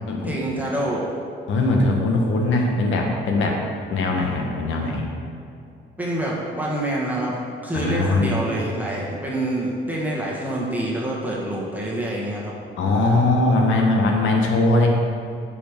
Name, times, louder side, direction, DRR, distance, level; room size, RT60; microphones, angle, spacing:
voice 1, 0.2-1.0 6.0-12.5, right 1 dB, 10° right, -5 dB, 1.4 m, -26 dB
voice 2, 1.5-3.6 3.9-5.1 7.7-8.4 12.8-14.9, left 2 dB, 80° left, 1 dB, 1.2 m, -20 dB
9.8 x 4.9 x 3.5 m, 2.5 s
cardioid pair, 90°, 20 cm